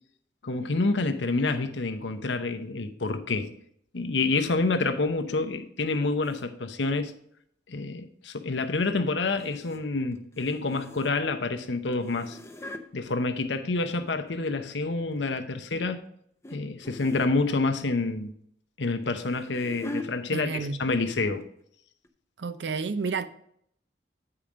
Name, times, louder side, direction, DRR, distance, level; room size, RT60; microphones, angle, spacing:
voice 1, 0.4-3.5 3.9-7.1 7.7-12.4 12.9-16.0 16.5-18.3 18.8-21.4, left 3 dB, 90° left, 0.8 m, -28 dB
sound 1, 6.2-6.4 9.4-9.8 10.1-11.3 11.9-12.8 13.9-14.7 15.1-15.4 16.4-16.6 16.8-17.4 18.8-20.1 20.9-21.2 21.4-21.5 22.0-22.1, left 2 dB, 15° left, 0.6 m, -42 dB
voice 2, 20.3-20.8 22.4-23.3, right 4 dB, 70° right, 0.6 m, -30 dB
8.8 x 4.8 x 5.0 m
head